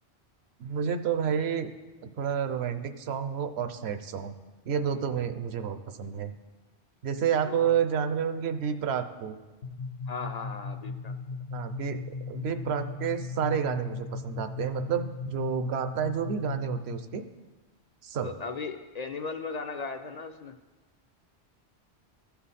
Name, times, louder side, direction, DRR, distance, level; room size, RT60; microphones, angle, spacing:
voice 1, 0.6-1.7 2.0-4.3 4.7-6.3 7.0-9.4 11.5-12.0 12.3-17.2 18.0-18.3, right 7 dB, 75° right, 10 dB, 0.9 m, -30 dB
voice 2, 7.4-7.8 10.1-11.1 18.2-20.5, left 4 dB, 55° left, 7 dB, 0.5 m, -37 dB
sound 1, 9.6-17.2, left 4 dB, 75° left, 0.9 m, -38 dB
15.0 x 5.7 x 4.2 m, 1.2 s
omnidirectional pair, 1.1 m